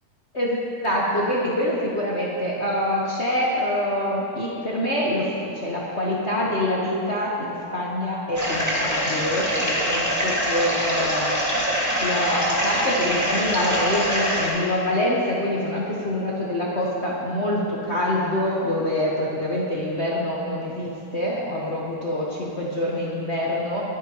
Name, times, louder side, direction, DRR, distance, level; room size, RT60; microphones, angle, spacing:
voice 1, 0.3-11.3 12.0-23.8, left 1 dB, 65° left, -5 dB, 0.6 m, -25 dB
sound 1, 8.3-14.5, equal, 5° right, 1.5 m, -24 dB
23.0 x 10.5 x 3.1 m, 2.6 s
omnidirectional pair, 3.5 m